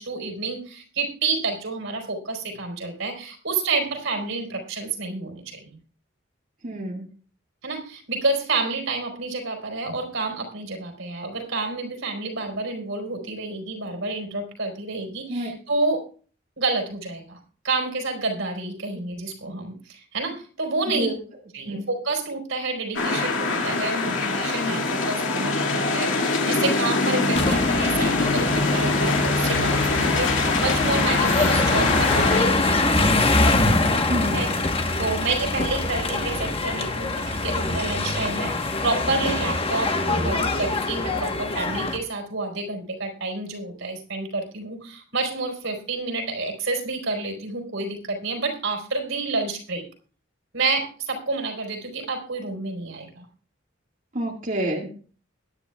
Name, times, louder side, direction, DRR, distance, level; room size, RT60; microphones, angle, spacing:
voice 1, 0.0-5.8 7.6-16.0 16.6-17.4 17.6-21.1 21.5-33.2 34.3-34.5 35.0-49.9 50.5-53.2, right 3 dB, 90° right, 3 dB, 4.3 m, -29 dB
voice 2, 6.6-7.1 15.3-15.5 20.9-21.2 21.6-21.8 34.1-34.5 54.1-54.9, right 1 dB, 45° right, -1 dB, 1.9 m, -28 dB
sound 1, 23.0-32.4, left 3 dB, 85° left, 2.3 m, -23 dB
sound 2, 27.4-42.0, left 2 dB, 30° left, 1.1 m, -24 dB
21.0 x 10.0 x 2.3 m, 0.40 s
head